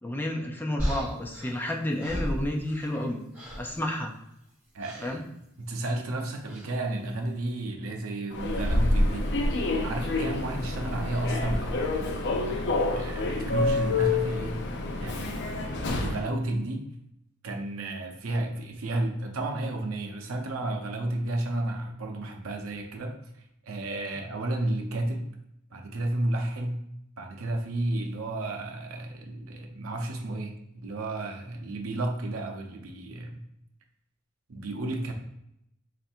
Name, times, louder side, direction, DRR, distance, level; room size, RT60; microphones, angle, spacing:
voice 1, 0.0-3.2 3.6-4.1 5.0-5.2, left 1 dB, 10° left, 1 dB, 0.5 m, -30 dB
sound 1, 0.8-3.1 3.3-3.8 4.8-5.1 6.5-6.7, equal, 10° right, 1.4 m, -34 dB
voice 2, 4.7-5.3 5.6-9.3 9.7-14.6 15.0-15.4 15.8-16.9 17.4-23.2 23.6-25.2 25.7-26.8 27.2-33.4 34.5-35.1, right 1 dB, 75° right, 2 dB, 0.6 m, -32 dB
Human voice / Subway metro underground, 8.3-16.3, left 2 dB, 55° left, 0.5 m, -28 dB
3.3 x 2.6 x 4.3 m, 0.79 s
head